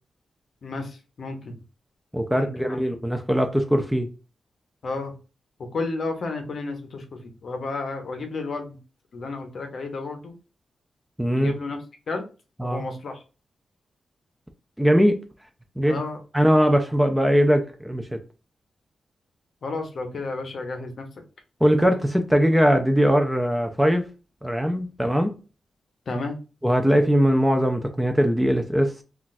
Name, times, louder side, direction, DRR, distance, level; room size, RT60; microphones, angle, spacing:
voice 1, 1.2-1.6 2.3-3.1 4.8-5.1 5.6-8.8 9.1-10.3 11.3-11.8 12.1-12.2 12.6-13.1 15.9-16.2 19.6-21.1 26.1-26.4, left 3 dB, 55° left, 0.6 m, -32 dB
voice 2, 2.1-4.1 11.2-11.5 12.6-12.9 14.8-15.2 15.8-16.0 16.3-18.2 21.6-24.1 24.4-25.3 26.6-29.0, equal, 5° right, 0.3 m, -21 dB
2.3 x 2.2 x 3.9 m
wide cardioid pair, 150°, 0 cm